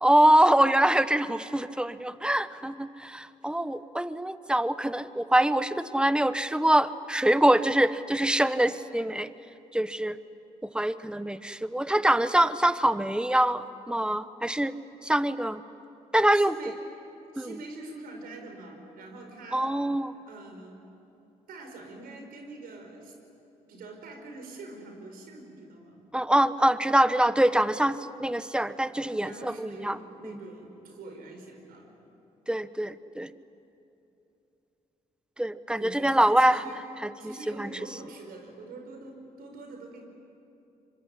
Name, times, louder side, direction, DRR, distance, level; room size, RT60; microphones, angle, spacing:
voice 1, 0.0-9.3 9.7-10.2 10.6-14.7 15.0-15.6 16.1-16.5 17.4-17.5 19.5-20.1 26.1-30.0 30.2-30.4 32.5-33.3 35.4-36.6 37.0-37.7, right 1 dB, 5° right, 14 dB, 1.2 m, -24 dB
voice 2, 16.3-16.8 17.3-19.7 20.2-20.8 21.5-23.1 23.7-26.0 29.2-31.9 35.8-36.8 37.2-40.0, right 2 dB, 75° right, 3 dB, 5.2 m, -44 dB
25.0 x 23.5 x 10.0 m, 2.8 s
supercardioid pair, 50°, 15 cm